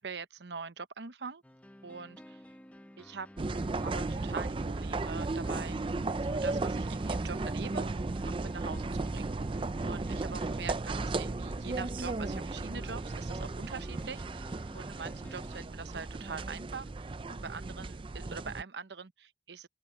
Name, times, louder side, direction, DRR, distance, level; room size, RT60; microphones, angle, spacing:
voice 1, 0.0-1.4 1.8-2.4 3.0-3.3 3.8-5.9 6.2-8.0 8.3-19.7, right 5 dB, 75° right, 0.9 m, -43 dB
sound 1, 1.4-15.7, equal, 10° left, 1.0 m, -53 dB
sound 2, 3.4-18.6, right 3 dB, 30° right, 0.4 m, -35 dB
open air
head